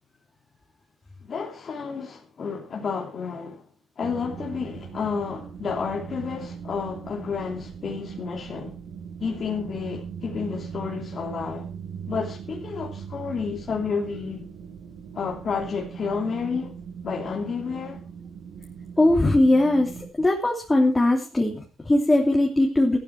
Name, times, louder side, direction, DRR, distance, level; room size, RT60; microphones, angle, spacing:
voice 1, 1.2-3.7 4.0-8.8 9.2-11.7 12.1-14.5 15.1-16.7 17.0-18.0, left 5 dB, 50° left, 2.8 m, -31 dB
sound 1, 4.0-20.1, right 7 dB, 80° right, 7.3 m, -39 dB
voice 2, 19.0-23.0, left 1 dB, 15° left, 3.0 m, -20 dB
14.0 x 12.5 x 4.5 m
cardioid pair, 90°, 0 cm